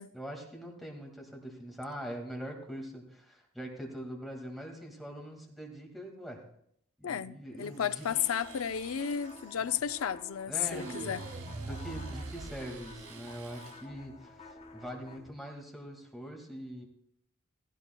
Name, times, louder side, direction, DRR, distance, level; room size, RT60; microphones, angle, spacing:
voice 1, 0.1-6.5 7.0-8.1 9.6-9.7 10.5-11.2 11.6-16.9, equal, ahead, 2.0 m, -43 dB
voice 2, 7.0-11.2, left 8 dB, 75° left, 0.5 m, -33 dB
Domestic sounds home sounds, 7.6-13.9, right 6 dB, 80° right, 1.9 m, -54 dB
sound 1, 8.1-15.3, left 3 dB, 30° left, 0.9 m, -52 dB
sound 2, 10.7-13.7, right 3 dB, 40° right, 0.5 m, -42 dB
16.5 x 16.0 x 2.3 m
head